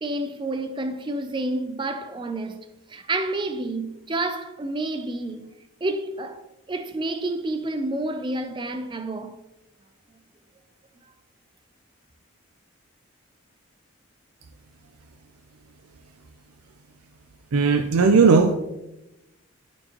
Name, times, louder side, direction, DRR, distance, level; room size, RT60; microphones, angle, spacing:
voice 1, 0.0-5.5 5.8-9.4, right 2 dB, 20° right, 0.5 m, -29 dB
voice 2, 17.5-18.5, right 4 dB, 85° right, 0.5 m, -17 dB
11.5 x 4.5 x 3.0 m
head